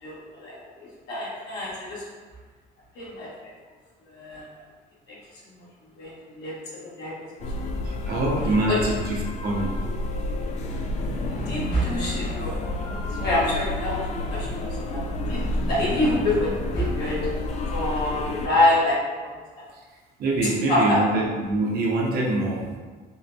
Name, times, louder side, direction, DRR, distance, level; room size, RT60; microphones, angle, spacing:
voice 1, 0.0-2.0 2.9-3.5 4.1-4.4 5.1-5.2 5.5-5.7 5.9-6.5 7.0-7.3 8.1-8.2 8.7-8.8 11.3-12.6 13.1-15.0 15.3-17.3 17.7-19.3 20.7-20.8, left 1 dB, 80° left, -7 dB, 1.2 m, -26 dB
sound 1, 7.4-18.5, left 2 dB, 45° left, 0.4 m, -29 dB
voice 2, 7.8-9.8 20.2-22.8, right 2 dB, 65° right, -2 dB, 0.7 m, -25 dB
3.8 x 2.1 x 2.7 m, 1.4 s
cardioid pair, 110°, 17 cm